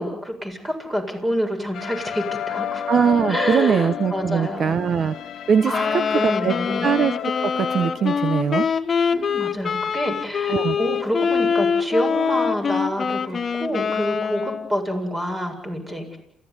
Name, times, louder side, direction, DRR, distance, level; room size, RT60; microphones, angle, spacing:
voice 1, 0.0-2.8 3.3-4.8 5.7-6.9 9.1-16.2, equal, 20° right, 4 dB, 7.7 m, -27 dB
sound 1, 1.7-8.5, left 9 dB, 70° left, 1.2 m, -31 dB
voice 2, 2.9-5.1 5.5-6.5 6.8-7.1 7.4-8.7 10.5-10.8, right 7 dB, 55° right, 12 dB, 1.1 m, -21 dB
Wind instrument woodwind instrument, 5.7-14.8, left 6 dB, 45° left, 1.5 m, -24 dB
28.5 x 16.0 x 9.9 m, 0.80 s
cardioid pair, 90°, 0 cm